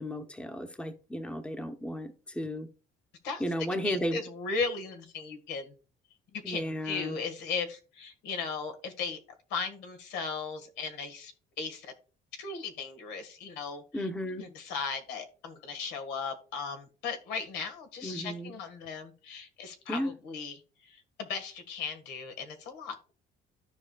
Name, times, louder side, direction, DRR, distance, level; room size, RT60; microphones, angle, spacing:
voice 1, 0.0-2.7 3.4-4.2 6.4-7.2 13.9-14.4 18.0-18.5 19.9-20.1, equal, 5° left, 0.9 m, -34 dB
voice 2, 3.8-5.8 6.5-9.2 9.5-11.3 11.6-11.9 12.3-14.1 14.4-23.0, left 5 dB, 90° left, 1.8 m, -37 dB
13.5 x 4.9 x 2.4 m
cardioid pair, 110°, 17 cm